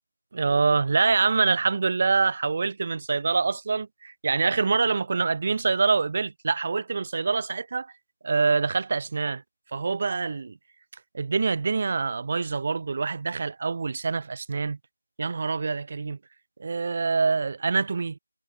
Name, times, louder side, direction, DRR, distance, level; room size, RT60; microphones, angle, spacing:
voice 1, 0.3-7.9 8.2-9.4 9.7-10.6 11.1-14.8 15.2-16.2 16.6-18.2, right 4 dB, 30° right, 2.8 m, -25 dB
figure-of-eight pair, 165°, 0 cm